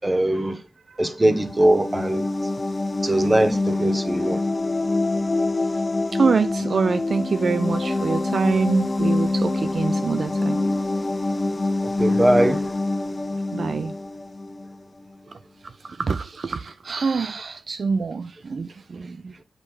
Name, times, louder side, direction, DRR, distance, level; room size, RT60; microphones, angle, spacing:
voice 1, 0.0-0.6 1.0-2.3 3.0-4.4 11.8-12.7, right 1 dB, 20° right, 1.0 m, -21 dB
sound 1, 1.2-14.8, left 2 dB, 30° left, 0.4 m, -25 dB
voice 2, 6.1-10.6 13.5-13.9 15.9-19.4, right 5 dB, 60° right, 0.3 m, -25 dB
7.5 x 3.2 x 4.4 m
cardioid pair, 75°, 0 cm